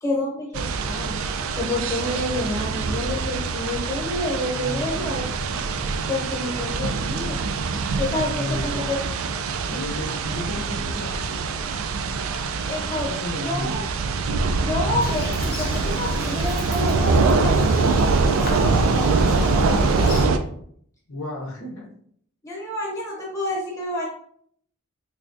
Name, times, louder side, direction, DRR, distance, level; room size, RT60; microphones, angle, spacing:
voice 1, 0.0-1.2 1.5-5.2 6.1-7.4 8.0-9.1 12.7-13.1 13.4-13.9 14.6-20.3 22.4-24.1, left 1 dB, 15° left, -2 dB, 1.0 m, -29 dB
sound 1, 0.5-20.4, right 4 dB, 70° right, 0.3 m, -24 dB
voice 2, 4.5-6.0 8.3-8.9 9.7-11.4 13.0-13.9 21.1-21.9, left 1 dB, 80° left, 0 dB, 0.8 m, -34 dB
Bird vocalization bird call bird song, 15.0-20.3, left 2 dB, 45° left, 0.5 m, -34 dB
3.4 x 3.3 x 2.6 m, 0.63 s
head